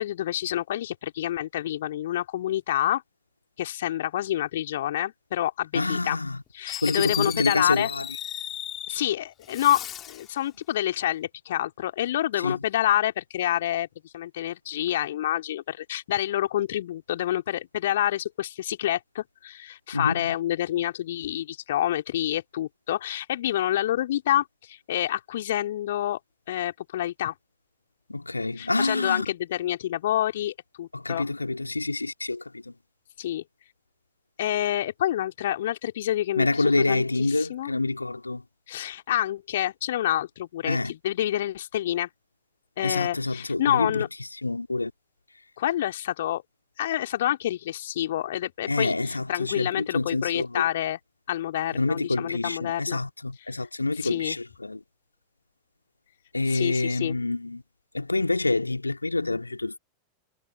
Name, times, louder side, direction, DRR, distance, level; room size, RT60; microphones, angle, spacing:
voice 1, 0.0-3.0 3.6-6.2 6.5-7.9 8.9-26.2 26.5-27.3 28.6-31.2 33.2-33.4 34.4-37.7 38.7-42.1 42.8-44.1 45.6-46.4 46.8-51.0 51.3-53.0 54.0-54.4 56.5-57.2, left 12 dB, 60° left, 3.1 m, -28 dB
voice 2, 5.7-6.4 6.8-8.1 12.4-12.6 19.9-20.3 28.1-29.3 30.9-32.7 36.4-38.4 40.6-40.9 42.8-44.1 44.4-44.9 48.7-50.6 51.7-54.8 56.3-57.6 57.9-59.8, left 2 dB, 80° left, 2.8 m, -27 dB
Fireworks, 6.2-6.3 6.7-9.1 9.4-10.3, left 11 dB, 30° left, 3.3 m, -35 dB
figure-of-eight pair, 90°, 0 cm